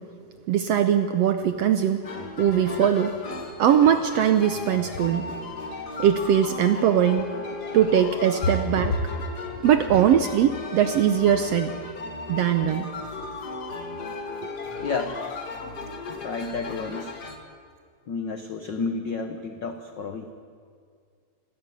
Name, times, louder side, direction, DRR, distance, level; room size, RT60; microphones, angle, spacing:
voice 1, 0.5-2.0 2.4-3.1 3.6-5.3 6.0-7.3 7.7-9.0 9.6-11.7 12.3-12.9, right 9 dB, 75° right, 9 dB, 1.5 m, -21 dB
sound 1, 2.0-17.4, left 3 dB, 40° left, 1.8 m, -36 dB
voice 2, 14.8-15.2 16.1-17.1 18.1-20.3, left 4 dB, 90° left, 7 dB, 0.9 m, -31 dB
26.0 x 13.5 x 9.3 m, 2.1 s
omnidirectional pair, 3.7 m